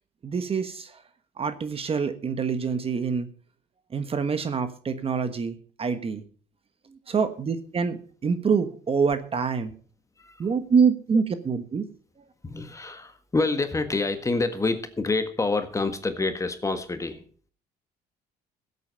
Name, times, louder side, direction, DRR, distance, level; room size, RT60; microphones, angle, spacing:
voice 1, 0.2-1.0 1.4-3.3 3.9-6.2 7.1-9.7 10.4-11.8, right 5 dB, 35° right, 10 dB, 1.3 m, -26 dB
voice 2, 10.2-10.5 12.4-17.2, left 3 dB, 20° left, 8 dB, 1.6 m, -27 dB
16.0 x 8.3 x 5.5 m, 0.43 s
cardioid pair, 110°, 17 cm